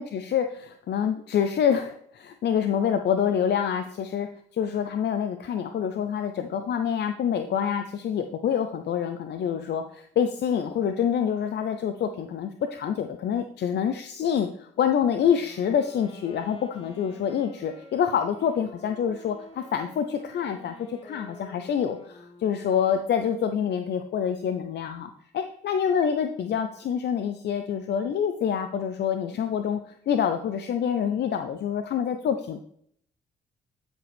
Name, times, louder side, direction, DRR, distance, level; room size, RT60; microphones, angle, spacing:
voice 1, 0.0-29.8 30.1-32.6, left 8 dB, 60° left, 8 dB, 0.6 m, -26 dB
Wind instrument woodwind instrument, 15.2-23.3, left 2 dB, 30° left, 1.6 m, -49 dB
13.0 x 5.1 x 3.4 m, 0.65 s
hypercardioid pair, 50°, 20 cm